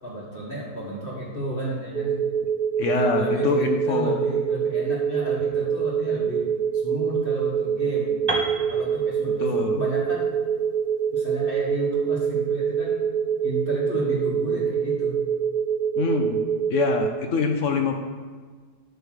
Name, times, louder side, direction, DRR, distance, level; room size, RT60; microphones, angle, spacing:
voice 1, 0.0-2.2 2.9-6.5 6.8-8.2 8.7-10.3 11.1-13.0 13.4-15.2, right 1 dB, 35° left, -4 dB, 1.3 m, -32 dB
sound 1, 1.9-17.1, right 7 dB, 90° right, 1.7 m, -25 dB
voice 2, 2.8-4.2 9.4-9.8 16.0-16.4 16.7-17.9, left 5 dB, 65° left, 4 dB, 0.8 m, -25 dB
Piano, 8.3-12.2, right 2 dB, 40° right, 0.3 m, -34 dB
9.2 x 3.3 x 6.2 m, 1.5 s
omnidirectional pair, 1.7 m